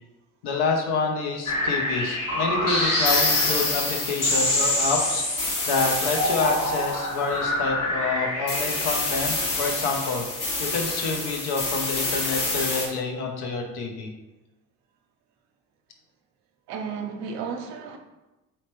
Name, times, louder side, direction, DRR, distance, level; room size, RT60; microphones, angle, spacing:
voice 1, 0.4-5.2 5.7-10.3 10.6-14.1, left 4 dB, 80° left, 3 dB, 0.7 m, -27 dB
sound 1, 1.5-12.9, left 2 dB, 50° left, 1.3 m, -26 dB
voice 2, 16.7-18.0, right 6 dB, 85° right, 4 dB, 0.6 m, -33 dB
3.3 x 2.8 x 3.0 m, 1.1 s
supercardioid pair, 55°, 38 cm